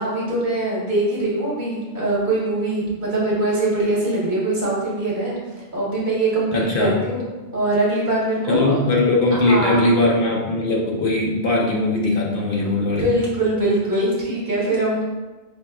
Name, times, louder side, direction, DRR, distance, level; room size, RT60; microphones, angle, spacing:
voice 1, 0.0-5.4 5.7-7.2 7.5-8.7 9.3-9.9 12.6-15.1, right 2 dB, 50° right, -6 dB, 1.0 m, -22 dB
voice 2, 6.5-7.0 8.5-13.1, left 2 dB, 65° left, -2 dB, 0.7 m, -20 dB
4.5 x 2.2 x 2.2 m, 1.2 s
omnidirectional pair, 1.0 m